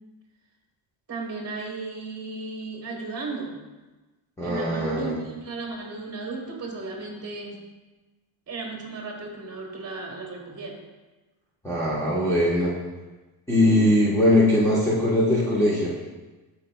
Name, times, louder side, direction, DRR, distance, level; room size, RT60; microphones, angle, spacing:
voice 1, 1.1-3.6 4.4-7.6 8.5-10.8, right 3 dB, 30° right, 0 dB, 1.3 m, -35 dB
voice 2, 4.4-5.2 11.6-12.7 13.5-15.9, left 1 dB, 5° left, -9 dB, 1.1 m, -21 dB
11.5 x 4.4 x 2.2 m, 1.2 s
cardioid pair, 130°, 48 cm